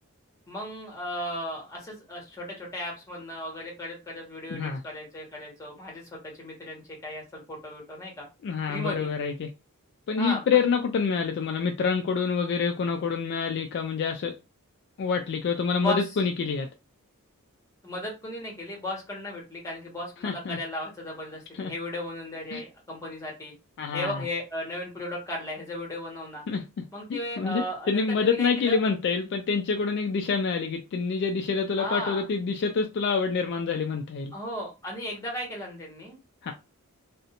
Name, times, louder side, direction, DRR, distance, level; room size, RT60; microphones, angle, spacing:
voice 1, 0.5-8.3 8.7-9.1 10.2-10.6 15.8-16.0 17.8-23.5 23.9-26.4 26.9-28.8 31.8-32.2 34.3-36.2, left 1 dB, 15° left, 1.0 m, -35 dB
voice 2, 4.5-4.8 8.4-9.5 10.1-14.4 15.0-16.7 20.2-20.6 21.6-21.7 22.5-22.6 23.8-24.2 26.5-26.6 27.1-34.3 36.4-36.5, left 5 dB, 50° left, 0.3 m, -27 dB
2.5 x 2.0 x 2.8 m
head